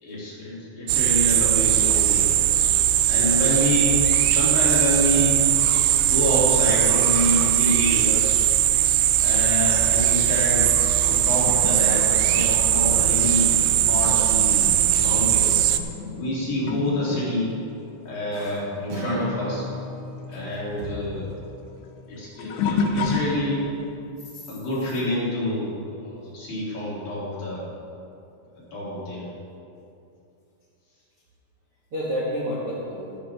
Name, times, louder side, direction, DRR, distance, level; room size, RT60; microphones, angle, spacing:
voice 1, 0.0-2.4 3.1-5.4 6.0-8.3 9.2-10.7 11.0-13.6 13.9-15.6 16.1-17.5 18.0-19.7 20.3-21.3 22.1-23.7 24.5-27.6 28.7-29.3, left 1 dB, 50° left, -9 dB, 4.9 m, -27 dB
sound 1, 0.9-15.8, right 12 dB, 85° right, 2.5 m, -20 dB
sound 2, 11.3-19.3 19.5-23.9 24.5-24.8 27.1-27.2 28.0-28.1, left 4 dB, 75° left, 2.8 m, -33 dB
Acoustic guitar, 18.9-23.1, left 1 dB, 60° right, 1.4 m, -38 dB
voice 2, 20.3-20.9 24.2-24.5 31.9-33.1, equal, 45° right, -8 dB, 2.0 m, -31 dB
14.0 x 12.5 x 3.8 m, 2.6 s
omnidirectional pair, 5.8 m